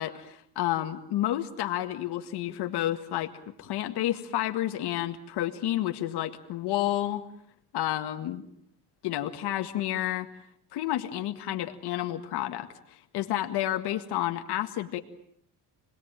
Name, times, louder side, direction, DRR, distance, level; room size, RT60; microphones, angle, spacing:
voice 1, 0.0-3.3 3.6-7.2 7.7-8.5 9.0-10.3 10.7-15.0, left 13 dB, 75° left, 6 dB, 1.9 m, -30 dB
29.5 x 20.5 x 9.0 m, 0.72 s
cardioid pair, 155°, 40 cm